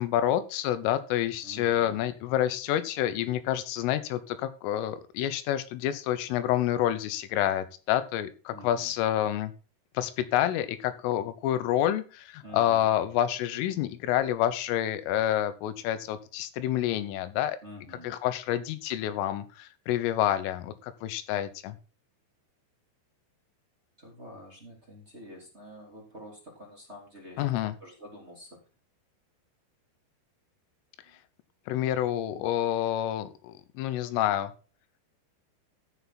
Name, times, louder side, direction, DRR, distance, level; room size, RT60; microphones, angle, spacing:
voice 1, 0.0-9.5 10.0-17.6 18.0-21.8 27.4-27.8 31.7-34.5, left 12 dB, 85° left, 13 dB, 3.7 m, -28 dB
voice 2, 1.4-2.1 8.5-8.9 12.4-12.9 17.6-18.1 24.0-28.6 31.1-31.2, equal, 15° right, -1 dB, 2.6 m, -48 dB
14.0 x 6.8 x 4.2 m, 0.34 s
omnidirectional pair, 5.7 m